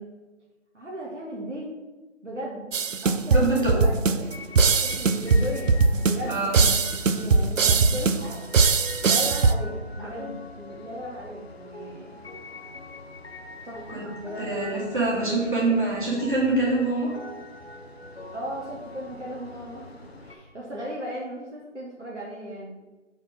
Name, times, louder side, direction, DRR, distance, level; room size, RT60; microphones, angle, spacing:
voice 1, 0.7-1.7 2.2-2.7 3.0-4.5 4.8-5.7 6.0-6.5 7.2-8.4 9.0-12.2 13.6-13.8 14.2-14.5 18.3-22.8, equal, 65° right, -4 dB, 1.5 m, -36 dB
sound 1, 2.7-9.5, right 4 dB, 85° right, 0.6 m, -21 dB
voice 2, 3.3-3.8 6.3-6.6 10.0-10.1 13.9-14.1 14.4-17.1, right 2 dB, 40° right, -6 dB, 2.2 m, -25 dB
sound 2, 4.3-20.4, left 2 dB, 55° left, 0.8 m, -42 dB
4.5 x 4.4 x 5.8 m, 1.1 s
figure-of-eight pair, 180°, 38 cm